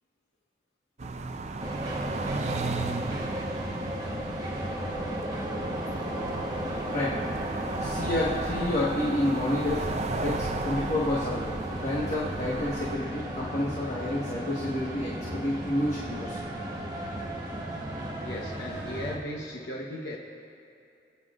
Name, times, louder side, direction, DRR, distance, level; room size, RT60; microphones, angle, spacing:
sound 1, 1.0-13.0, right 3 dB, 35° right, 0.5 m, -35 dB
sound 2, 1.6-19.2, right 1 dB, 20° right, 1.1 m, -35 dB
voice 1, 6.9-7.2 7.8-16.4, left 1 dB, 40° left, -6 dB, 1.4 m, -30 dB
voice 2, 18.2-20.2, left 1 dB, 60° left, -2 dB, 1.0 m, -37 dB
27.0 x 9.3 x 2.5 m, 2.6 s
head